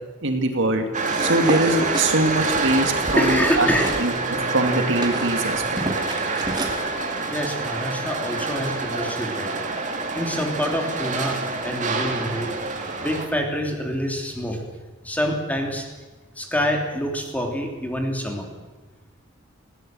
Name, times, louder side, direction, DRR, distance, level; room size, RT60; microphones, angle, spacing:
voice 1, 0.2-0.9 1.2-3.7 4.0-5.8, right 2 dB, 65° right, 5 dB, 2.4 m, -22 dB
sound 1, 0.9-13.3, right 3 dB, 40° right, 2.4 m, -27 dB
sound 2, 1.1-4.0 4.4-6.8, right 1 dB, 20° right, 2.4 m, -31 dB
voice 2, 3.2-4.0 7.3-9.6 10.1-12.5 13.0-14.6 15.0-15.9 16.3-18.5, equal, 10° left, 2 dB, 3.2 m, -26 dB
19.5 x 17.0 x 7.8 m, 1.2 s
head